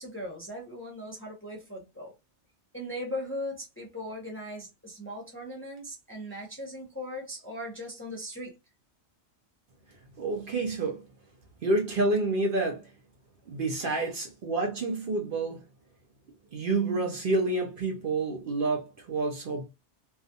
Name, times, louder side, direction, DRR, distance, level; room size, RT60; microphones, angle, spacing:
voice 1, 0.0-2.1 2.7-8.5 13.8-14.1, left 1 dB, 15° left, 0.5 m, -39 dB
voice 2, 10.2-11.0 11.6-12.8 13.5-15.6 16.5-19.7, right 2 dB, 60° right, 0.7 m, -28 dB
2.4 x 2.3 x 2.6 m
omnidirectional pair, 1.2 m